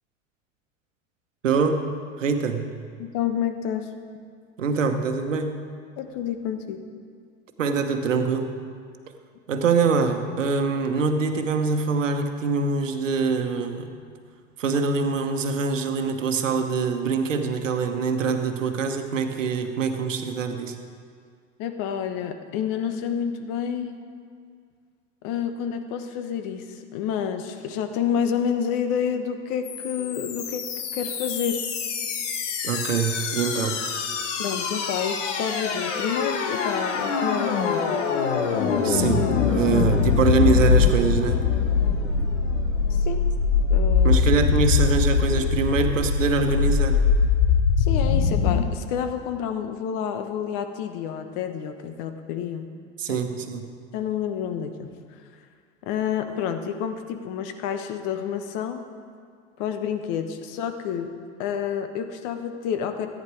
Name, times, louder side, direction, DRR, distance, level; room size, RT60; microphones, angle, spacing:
voice 1, 1.4-1.8 2.2-2.8 4.6-5.6 7.6-8.5 9.5-13.9 14.6-20.7 32.6-33.8 38.8-41.5 42.2-42.3 44.0-47.0 53.0-53.7, right 5 dB, 90° right, 6 dB, 1.1 m, -24 dB
voice 2, 3.0-3.9 6.0-6.9 21.6-24.0 25.2-30.7 30.9-31.6 34.4-37.9 39.5-39.7 42.9-43.2 43.7-44.2 47.8-52.7 53.1-53.2 53.9-54.9 55.8-58.8 59.6-61.1 61.4-63.1, left 8 dB, 55° left, 7 dB, 1.2 m, -29 dB
sound 1, 29.6-48.6, left 5 dB, 75° left, 1.4 m, -23 dB
14.0 x 9.6 x 4.8 m, 2.1 s
hypercardioid pair, 85°, 37 cm